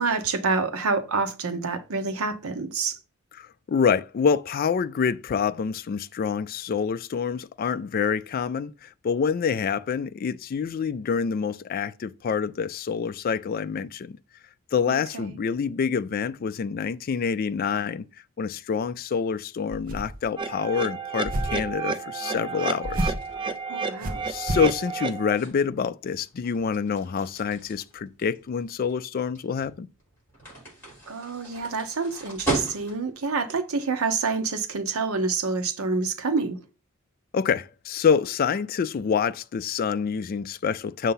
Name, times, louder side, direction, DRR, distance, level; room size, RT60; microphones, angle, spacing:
voice 1, 0.0-3.0 14.9-15.4 23.7-24.2 31.1-36.6, right 4 dB, 85° right, 0.8 m, -27 dB
voice 2, 3.4-14.2 14.7-18.1 18.4-23.1 24.3-29.9 37.3-41.1, left 6 dB, 45° left, 0.3 m, -27 dB
sound 1, 19.7-20.3 21.2-21.7 22.8-23.3 24.0-24.7, equal, 40° right, 0.8 m, -30 dB
sound 2, 20.4-25.4, right 5 dB, 20° right, 0.4 m, -31 dB
sound 3, 22.8-33.2, right 2 dB, 10° left, 3.9 m, -37 dB
6.6 x 2.7 x 5.5 m
head